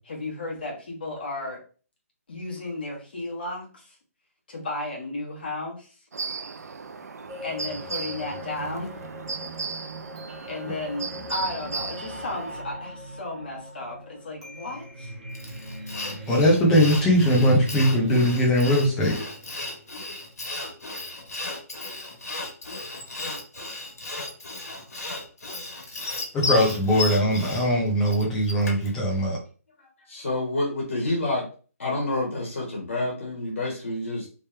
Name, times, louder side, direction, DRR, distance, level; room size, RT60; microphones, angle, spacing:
voice 1, 0.1-1.6 2.3-4.0 4.5-5.9 7.4-8.9 10.4-15.1, left 2 dB, 40° left, -1 dB, 1.3 m, -34 dB
sound 1, 6.1-12.6, right 4 dB, 85° right, 0.5 m, -36 dB
sound 2, 7.3-20.3, right 2 dB, 25° right, 0.9 m, -40 dB
Sawing, 15.4-28.9, left 2 dB, 90° left, 1.6 m, -34 dB
voice 2, 16.3-19.2 26.3-29.4, equal, 5° left, -3 dB, 0.5 m, -20 dB
voice 3, 29.8-31.5 31.8-34.3, left 2 dB, 55° left, -3 dB, 1.5 m, -28 dB
3.3 x 3.0 x 3.2 m, 0.38 s
hypercardioid pair, 180°, 8 cm